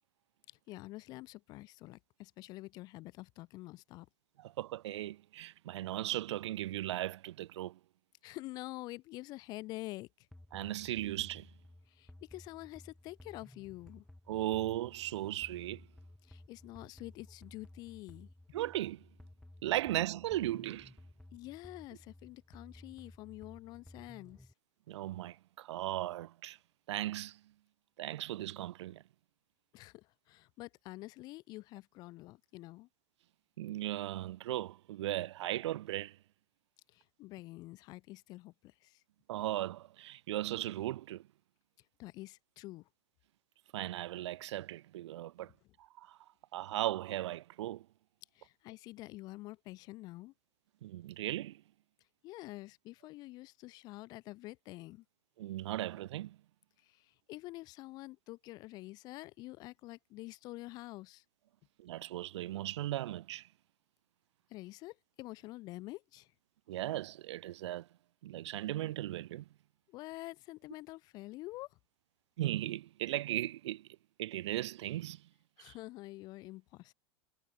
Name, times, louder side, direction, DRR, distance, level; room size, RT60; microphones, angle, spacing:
voice 1, 0.5-4.1 8.2-10.3 11.9-14.0 16.2-18.3 21.3-24.5 29.7-32.9 36.9-39.0 42.0-42.9 48.3-50.3 52.2-55.0 56.8-61.2 64.5-66.3 69.9-71.8 75.6-76.9, left 19 dB, 30° left, 2.0 m, -47 dB
voice 2, 4.4-7.8 10.5-11.5 14.3-15.9 18.5-19.1 19.6-20.9 24.9-26.6 26.9-27.4 28.0-29.0 33.6-36.2 39.3-41.3 43.7-45.5 45.8-46.2 46.5-47.9 50.8-51.6 55.4-56.4 61.8-63.5 66.7-67.9 68.2-69.4 72.4-73.9 74.2-75.2 75.6-75.7, right 14 dB, 80° right, 0.7 m, -37 dB
sound 1, 10.3-24.5, left 1 dB, ahead, 6.1 m, -56 dB
supercardioid pair, 180°, 15 cm